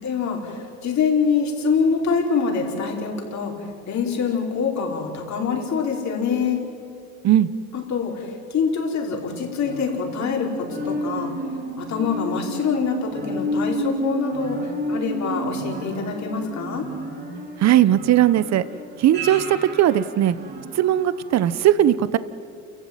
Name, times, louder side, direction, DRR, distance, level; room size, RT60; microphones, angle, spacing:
voice 1, 0.0-3.5 3.9-6.6 7.7-11.3 11.8-16.8, left 5 dB, 50° left, 0 dB, 5.1 m, -25 dB
sound 1, 9.7-21.1 21.6-21.7, right 1 dB, 30° right, 4.0 m, -31 dB
voice 2, 17.6-18.7 19.0-20.3 20.7-22.2, right 12 dB, 45° right, 16 dB, 1.0 m, -18 dB
29.0 x 15.0 x 9.2 m, 2.4 s
supercardioid pair, 95°, 36 cm